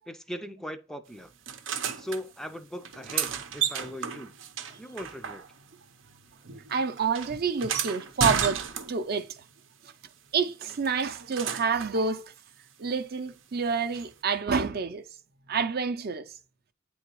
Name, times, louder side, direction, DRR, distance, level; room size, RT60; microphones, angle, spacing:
voice 1, 0.1-1.3 2.0-4.3 4.8-5.4, equal, 5° left, 0.4 m, -39 dB
sound 1, 1.5-2.2 2.8-5.8 6.1-9.2 10.7-12.0 13.9-14.0, right 7 dB, 85° right, 0.7 m, -32 dB
voice 2, 6.7-8.6 8.9-9.3 10.3-12.2 12.8-15.0 15.5-16.2, right 5 dB, 55° right, 0.6 m, -28 dB
9.0 x 3.5 x 2.9 m
head